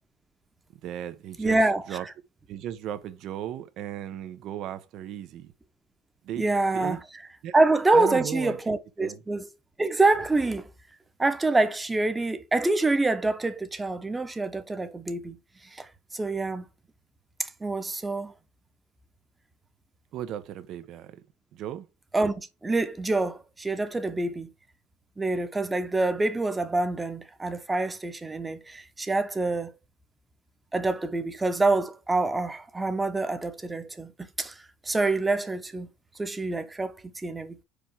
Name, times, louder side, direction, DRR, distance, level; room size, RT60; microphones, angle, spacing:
voice 1, 0.8-1.6 1.9-2.0 2.5-5.5 6.2-7.0 7.4-7.5 7.9-9.2 20.1-21.2 21.5-21.9, right 11 dB, 60° right, 1.0 m, -36 dB
voice 2, 1.4-2.0 6.4-7.0 7.5-9.5 9.8-10.7 11.2-15.4 15.7-16.7 17.4-18.3 22.1-24.5 25.2-29.7 30.7-34.1 34.4-35.9 36.2-37.6, right 2 dB, 15° right, 1.1 m, -26 dB
5.1 x 4.7 x 5.8 m
supercardioid pair, 110°, 0 cm